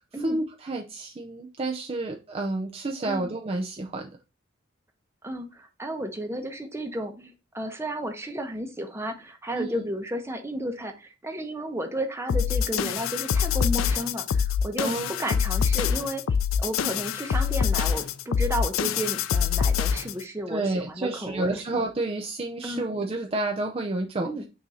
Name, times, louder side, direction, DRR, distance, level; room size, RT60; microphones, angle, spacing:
voice 1, 0.2-4.1 9.5-9.9 14.8-15.4 20.5-24.3, right 2 dB, 30° right, 1 dB, 0.5 m, -30 dB
voice 2, 5.2-16.2 16.6-21.6 22.6-22.9 24.2-24.4, right 1 dB, 15° right, 5 dB, 0.9 m, -33 dB
sound 1, 12.3-20.2, left 7 dB, 80° left, 0.4 m, -25 dB
6.2 x 2.8 x 5.5 m, 0.29 s
head